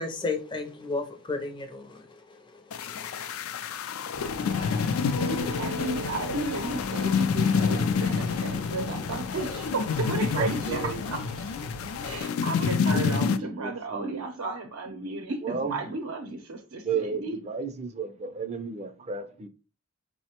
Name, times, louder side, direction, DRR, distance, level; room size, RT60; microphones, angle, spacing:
voice 1, 0.0-2.4 2.8-2.9, left 3 dB, 25° left, 0.5 m, -33 dB
sound 1, 2.7-13.4, left 6 dB, 90° left, 0.3 m, -28 dB
sound 2, 4.1-12.2, left 1 dB, 70° left, 0.8 m, -39 dB
voice 2, 5.1-11.5 12.0-17.4, right 3 dB, 90° right, 0.6 m, -34 dB
voice 3, 10.4-11.0 12.9-14.2 15.4-15.7 16.8-19.5, right 5 dB, 30° right, 0.4 m, -33 dB
5.5 x 2.1 x 2.9 m
head